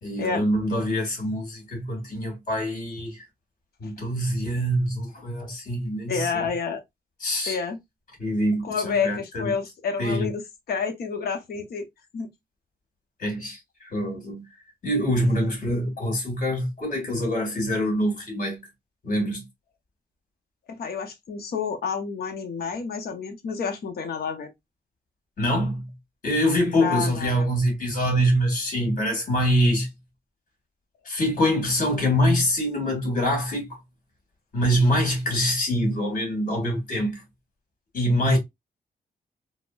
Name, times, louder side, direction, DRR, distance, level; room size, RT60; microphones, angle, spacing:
voice 1, 0.0-3.2 3.8-6.5 7.2-7.6 8.2-9.5 10.0-10.3 13.2-14.4 14.8-18.6 19.0-19.4 25.4-25.9 26.2-29.9 31.1-33.8 34.5-37.2 37.9-38.4, equal, 50° left, 2.1 m, -24 dB
voice 2, 6.1-6.8 7.5-7.8 8.6-10.4 10.7-11.9 12.1-12.3 20.7-24.5 26.7-27.5, left 5 dB, 70° left, 0.9 m, -29 dB
4.1 x 2.1 x 2.4 m
wide cardioid pair, 165°, 17 cm